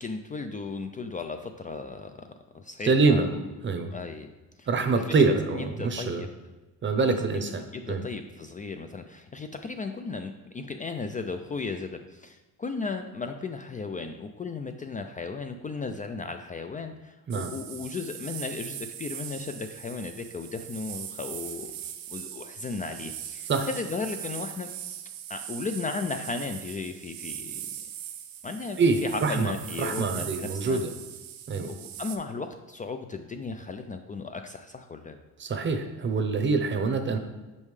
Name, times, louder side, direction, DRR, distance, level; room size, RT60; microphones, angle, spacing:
voice 1, 0.0-3.4 3.9-4.3 4.6-4.7 5.1-6.3 7.3-7.5 7.7-21.7 22.1-24.7 25.3-27.7 28.4-30.8 31.6-35.2, left 4 dB, 25° left, 7 dB, 0.4 m, -35 dB
voice 2, 2.8-3.3 3.6-3.9 4.7-6.3 6.8-8.0 17.3-17.5 23.5-23.7 28.8-30.9 31.5-31.7 35.4-37.2, right 4 dB, 35° right, 7 dB, 0.8 m, -25 dB
sound 1, 17.3-32.2, right 10 dB, 80° right, 0.7 m, -40 dB
6.4 x 5.3 x 3.2 m, 1.2 s
cardioid pair, 100°, 34 cm